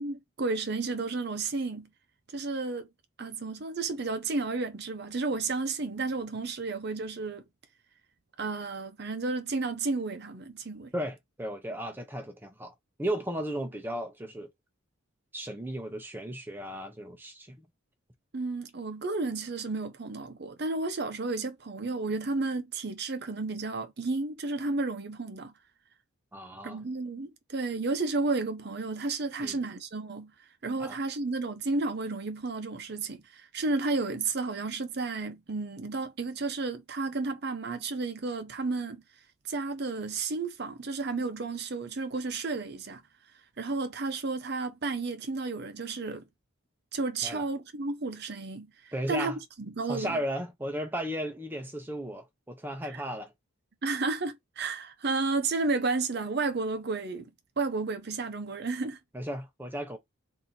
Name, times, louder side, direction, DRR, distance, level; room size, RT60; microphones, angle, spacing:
voice 1, 0.0-1.9 2.3-2.9 3.2-7.4 8.4-10.9 18.3-25.5 26.6-30.3 30.6-39.0 39.5-43.0 43.6-46.2 46.9-49.3 49.8-50.2 52.9-53.0 53.8-57.3 57.6-59.0, right 3 dB, 50° right, 0.7 m, -32 dB
voice 2, 10.9-12.7 13.0-14.5 15.3-17.7 26.3-26.8 29.4-29.6 30.8-31.0 47.2-47.4 48.9-49.4 49.9-53.3 59.1-60.0, equal, 10° right, 0.7 m, -35 dB
4.1 x 2.7 x 4.2 m
head